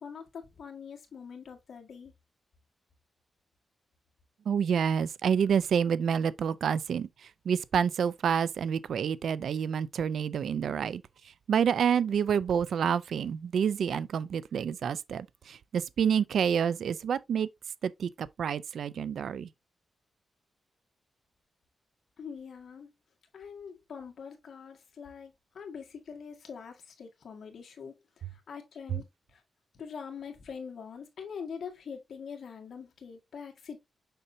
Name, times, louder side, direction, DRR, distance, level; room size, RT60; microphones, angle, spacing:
voice 1, 0.0-2.1 22.2-22.9 23.3-29.4 29.7-33.8, left 6 dB, 70° left, 1.7 m, -44 dB
voice 2, 4.5-11.0 11.5-17.5 17.8-19.5, right 7 dB, 80° right, 0.5 m, -28 dB
6.7 x 5.5 x 2.7 m
cardioid pair, 90°, 0 cm